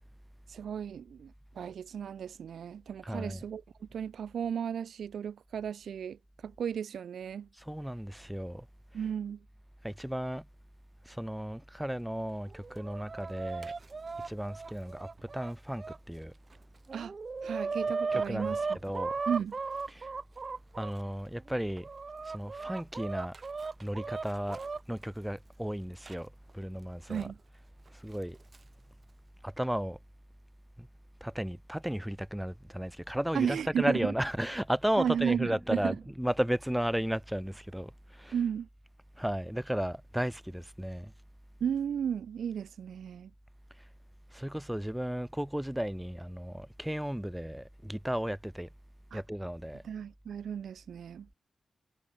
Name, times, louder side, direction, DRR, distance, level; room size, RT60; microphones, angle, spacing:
voice 1, 0.5-7.5 8.9-9.4 16.9-17.1 17.4-18.6 19.3-19.5 27.1-27.4 33.3-34.1 35.0-35.9 38.3-38.7 41.6-43.3 49.1-49.2 49.8-51.3, right 8 dB, 80° right, 3.2 m, -34 dB
voice 2, 3.0-3.4 7.6-8.7 8.9-9.1 9.8-10.4 11.0-13.7 14.2-16.3 18.1-19.2 19.9-20.1 20.8-21.9 22.2-23.4 23.8-24.6 24.9-27.3 27.9-28.4 29.4-30.0 30.8-30.9 31.2-38.5 39.2-41.1 43.8-43.9 44.3-48.7 49.1-49.8, equal, 5° right, 3.1 m, -34 dB
Chicken rooster, 12.5-16.0 16.5-16.6 16.9-20.9 21.5-24.8 26.1-26.2 27.2-27.3 28.2-28.6, right 4 dB, 50° right, 3.0 m, -37 dB
cardioid pair, 55°, 0 cm